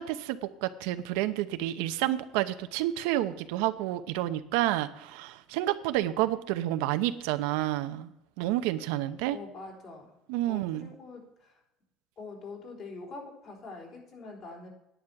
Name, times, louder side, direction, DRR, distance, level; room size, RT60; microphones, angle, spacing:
voice 1, 0.0-8.1 8.4-9.4 10.3-10.9, right 14 dB, 85° right, 10 dB, 0.7 m, -29 dB
voice 2, 9.3-10.1 10.5-11.6 12.2-14.7, left 3 dB, 45° left, 0 dB, 3.7 m, -44 dB
10.0 x 9.5 x 5.9 m, 0.86 s
cardioid pair, 140°, 0 cm